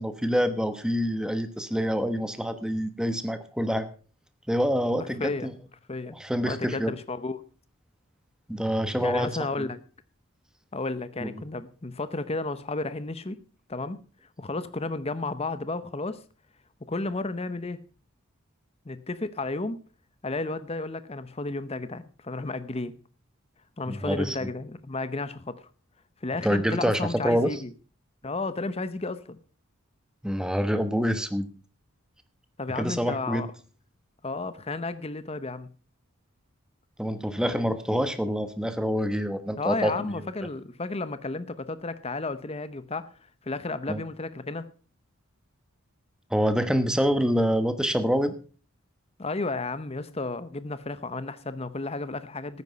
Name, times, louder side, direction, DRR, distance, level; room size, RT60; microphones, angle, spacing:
voice 1, 0.0-3.9 4.5-5.5 6.1-6.9 8.5-9.3 9.6-9.7 11.2-11.4 23.9-24.4 26.4-27.6 30.2-31.5 32.7-33.5 37.0-40.3 43.9-44.0 46.3-48.3, equal, 5° right, 1.1 m, -26 dB
voice 2, 5.2-5.5 5.9-6.2 6.4-7.4 9.0-9.8 10.7-13.4 13.7-14.0 14.4-16.2 16.9-17.8 18.9-19.8 20.2-22.9 23.8-25.6 26.2-27.7 28.2-29.4 32.6-33.5 34.2-35.7 39.6-43.0 43.4-44.7 49.2-52.6, left 3 dB, 30° left, 0.8 m, -32 dB
13.5 x 9.6 x 5.6 m
head